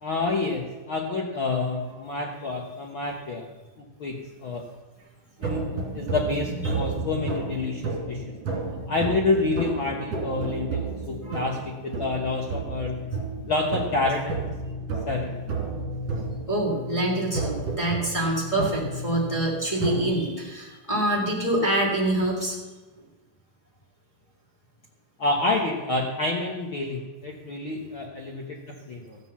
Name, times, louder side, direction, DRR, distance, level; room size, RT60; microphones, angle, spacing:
voice 1, 0.0-3.5 3.8-4.6 5.4-5.7 5.9-8.3 8.9-13.0 13.5-14.4 15.1-15.4 25.2-29.2, left 3 dB, 80° left, -1 dB, 1.1 m, -28 dB
sound 1, 5.4-20.0, right 3 dB, 45° right, 3.5 m, -32 dB
voice 2, 16.5-22.6, right 1 dB, 10° left, -3 dB, 2.1 m, -26 dB
14.5 x 7.4 x 7.2 m, 1.2 s
omnidirectional pair, 4.4 m